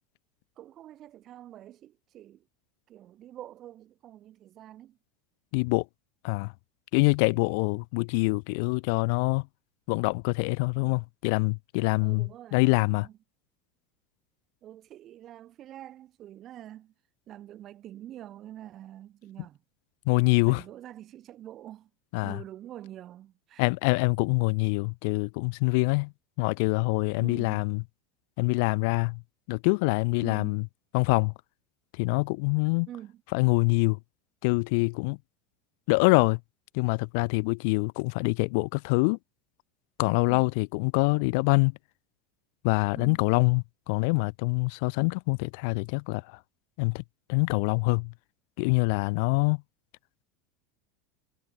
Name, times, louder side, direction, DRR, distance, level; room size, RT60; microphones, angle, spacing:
voice 1, 0.6-2.4 2.9-5.0 10.7-11.0 12.0-13.1 14.6-16.9 17.3-19.6 20.4-21.9 22.2-23.7 27.2-27.7 30.2-30.6 32.9-33.2 40.3-40.5 42.9-43.2, right 12 dB, 30° right, 6.5 m, -46 dB
voice 2, 5.5-5.8 6.2-6.5 6.9-9.5 9.9-13.1 20.1-20.6 22.1-22.4 23.6-26.1 26.4-27.8 28.4-29.2 29.5-30.6 30.9-31.3 32.0-32.9 33.3-34.0 34.4-35.2 35.9-36.4 36.7-39.2 40.0-41.8 42.6-46.4 46.8-47.0 47.3-48.1 48.6-49.6, left 31 dB, 55° left, 0.9 m, -25 dB
supercardioid pair, 170°, 0 cm